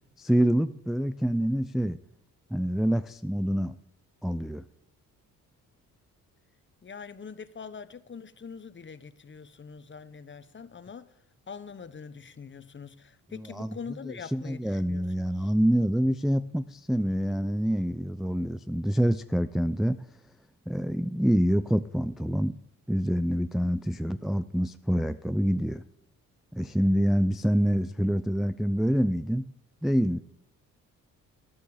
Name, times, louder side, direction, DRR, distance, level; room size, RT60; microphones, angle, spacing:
voice 1, 0.2-2.0 2.5-3.8 4.2-4.6 13.3-13.8 14.3-20.0 20.7-22.5 22.9-25.8 26.5-29.4 29.8-30.2, equal, ahead, 10 dB, 0.4 m, -26 dB
voice 2, 6.8-11.1 11.5-15.1 15.4-15.5, left 6 dB, 30° left, 13 dB, 0.9 m, -43 dB
13.0 x 11.5 x 5.0 m, 0.82 s
cardioid pair, 75°, 35 cm